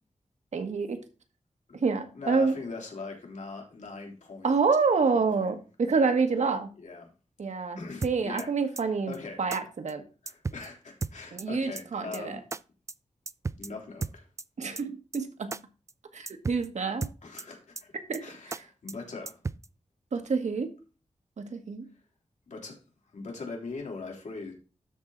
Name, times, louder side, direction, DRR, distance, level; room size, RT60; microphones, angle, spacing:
voice 1, 0.5-1.0 1.8-2.6 4.4-6.7 7.4-10.0 11.3-12.4 14.6-15.6 16.1-17.1 18.1-18.6 20.1-20.7 21.4-21.9, right 4 dB, 70° right, 1.5 m, -28 dB
voice 2, 2.1-4.5 5.1-5.5 6.8-7.1 7.8-9.4 10.2-12.4 13.6-14.2 17.2-17.9 18.2-19.3 22.5-22.8 23.1-24.5, left 3 dB, 80° left, 3.3 m, -41 dB
sound 1, 8.0-8.4 8.8-8.9 9.1-9.2 9.5-9.6 9.9-10.0 10.3-10.7 11.0-11.4 11.8-11.9 12.1-12.2 12.5-12.6 12.9-13.0 13.3-13.7 14.0-14.4 14.8-14.9 15.1-15.2 15.5-15.6 15.9-16.0 16.3-16.7 17.0-17.4 17.8-17.9 18.1-18.2 18.5-18.6 18.9-19.0 19.3-19.7, right 3 dB, 25° right, 0.3 m, -34 dB
12.5 x 4.5 x 3.9 m
wide cardioid pair, 130°, 12 cm